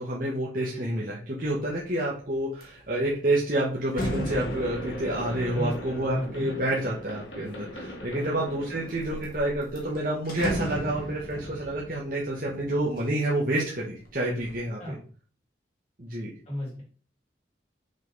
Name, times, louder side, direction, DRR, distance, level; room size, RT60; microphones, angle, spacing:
voice 1, 0.0-14.9 16.0-16.3, right 1 dB, 50° right, -4 dB, 1.3 m, -29 dB
sound 1, 1.6-1.9 2.3-7.6 8.2-8.9 9.2-9.3 9.6-13.5 13.9-14.5, equal, 50° left, 1.6 m, -37 dB
sound 2, 4.0-10.0, equal, 80° left, 1.8 m, -39 dB
voice 2, 5.4-6.5 8.1-8.3 14.8-15.0 16.5-16.8, equal, 35° left, -4 dB, 3.0 m, -34 dB
5.8 x 5.5 x 4.0 m, 0.41 s
head